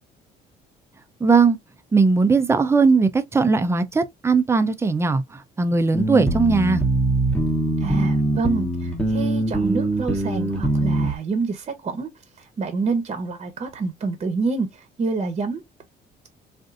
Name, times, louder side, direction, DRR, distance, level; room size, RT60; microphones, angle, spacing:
voice 1, 1.2-1.6 1.9-5.2 5.6-6.8, right 4 dB, 15° right, 0.5 m, -18 dB
sound 1, 5.9-11.1, right 2 dB, 5° left, 0.9 m, -22 dB
voice 2, 7.8-12.1 12.4-15.6, right 4 dB, 35° right, 0.9 m, -27 dB
3.7 x 2.5 x 2.5 m
cardioid pair, 110°, 17 cm